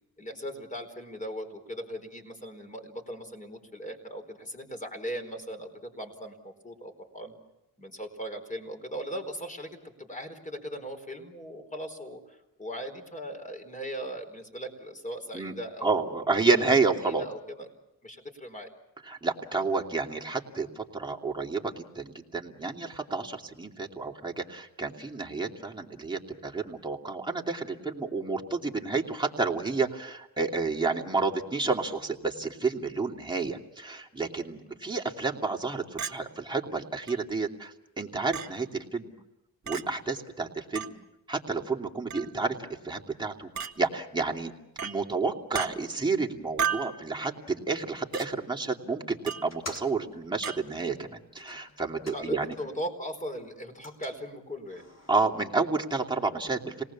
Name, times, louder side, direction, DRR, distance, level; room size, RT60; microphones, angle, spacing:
voice 1, 0.2-7.3 7.8-16.0 16.6-16.7 17.0-17.7 18.0-18.7 34.6-34.8 52.1-54.9, equal, 20° left, 6 dB, 4.4 m, -39 dB
voice 2, 15.8-17.2 19.0-39.1 39.7-40.9 41.3-44.5 44.8-52.5 55.1-56.8, right 4 dB, 10° right, 0 dB, 2.7 m, -30 dB
Chink clink, 36.0-36.2 37.1-37.2 38.3-38.5 39.7-39.8 40.8-40.9 42.1-42.3 43.6-43.7 44.8-45.0 45.5-45.7 46.6-46.9 48.1-48.3 49.3-49.5 50.4-50.6, right 8 dB, 45° right, 2.0 m, -32 dB
sound 1, 49.4-52.9 53.2-55.2, left 2 dB, 40° left, 3.6 m, -49 dB
27.5 x 19.0 x 7.3 m, 0.91 s
cardioid pair, 85°, 38 cm